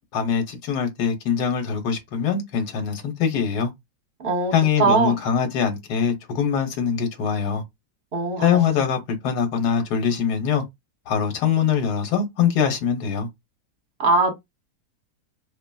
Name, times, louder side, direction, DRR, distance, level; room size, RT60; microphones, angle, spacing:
voice 1, 0.1-3.7 4.5-7.6 8.4-9.0 9.2-10.6 11.1-13.3, left 7 dB, 80° left, 1.4 m, -23 dB
voice 2, 4.2-4.5 4.8-5.1 8.1-8.6 14.0-14.3, right 3 dB, 45° right, 1.1 m, -20 dB
2.8 x 2.3 x 2.2 m
omnidirectional pair, 1.7 m